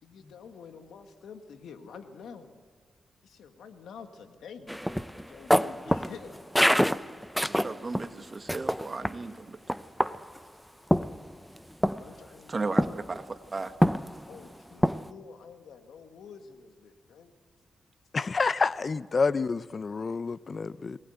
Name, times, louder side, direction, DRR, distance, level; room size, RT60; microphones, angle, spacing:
voice 1, 0.0-2.5 3.2-4.7 5.1-6.5 11.9-13.0 14.3-17.3, left 6 dB, 85° left, 1.8 m, -48 dB
sound 1, 4.7-8.1 8.5-9.2 9.7-10.4 10.9-11.6 11.8-12.1 12.8-13.2 13.8-14.4 14.8-15.1, equal, ahead, 0.6 m, -26 dB
voice 2, 7.4-9.6 12.5-13.3 13.5-13.7, right 3 dB, 35° right, 1.6 m, -35 dB
voice 3, 18.1-21.0, left 4 dB, 45° left, 0.6 m, -28 dB
22.0 x 19.5 x 8.0 m
cardioid pair, 75°, 0 cm